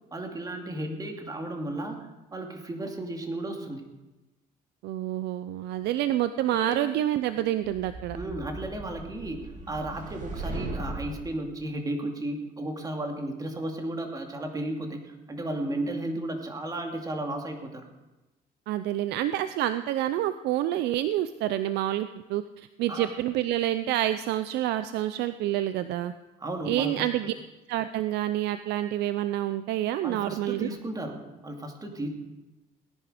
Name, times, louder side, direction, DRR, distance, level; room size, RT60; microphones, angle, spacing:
voice 1, 0.1-2.0 2.3-3.8 6.5-6.8 8.1-17.9 22.9-23.1 26.4-27.3 30.0-32.1, right 1 dB, 20° right, 3 dB, 2.4 m, -34 dB
voice 2, 4.8-8.2 18.7-26.1 26.7-27.3 27.7-30.7, right 13 dB, 80° right, 12 dB, 0.6 m, -28 dB
sound 1, 7.6-11.3, right 2 dB, 45° right, 2.7 m, -38 dB
18.0 x 10.5 x 5.1 m, 1.1 s
cardioid pair, 110°, 17 cm